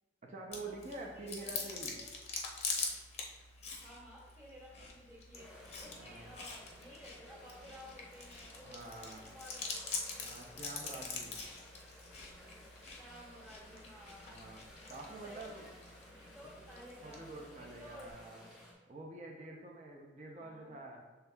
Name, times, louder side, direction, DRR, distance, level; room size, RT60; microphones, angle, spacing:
voice 1, 0.2-2.0 4.7-4.9 5.9-6.3 8.6-9.2 10.2-11.3 14.3-14.6 14.9-15.7 17.0-18.5 18.9-21.0, right 2 dB, 35° right, -1 dB, 0.5 m, -47 dB
Chewing mastication, 0.5-18.1, left 4 dB, 35° left, 0.6 m, -45 dB
voice 2, 1.0-2.2 3.8-5.5 5.8-9.6 10.8-11.1 13.0-14.3 14.9-18.2 20.3-20.8, equal, 15° right, -5 dB, 1.4 m, -55 dB
sound 1, 5.3-18.7, left 1 dB, ahead, 0.9 m, -57 dB
7.0 x 3.4 x 2.2 m, 1.2 s
head